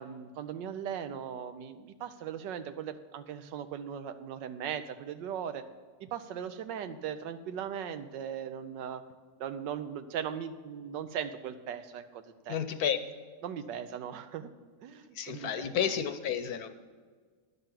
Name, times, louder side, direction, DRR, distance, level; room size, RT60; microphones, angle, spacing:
voice 1, 0.0-5.6 6.0-9.0 9.4-12.6 13.4-14.5 14.8-15.7, right 8 dB, 90° right, 10 dB, 1.4 m, -38 dB
voice 2, 12.5-13.0 15.1-16.7, left 8 dB, 65° left, 10 dB, 1.2 m, -31 dB
11.0 x 6.8 x 7.5 m, 1.5 s
omnidirectional pair, 1.8 m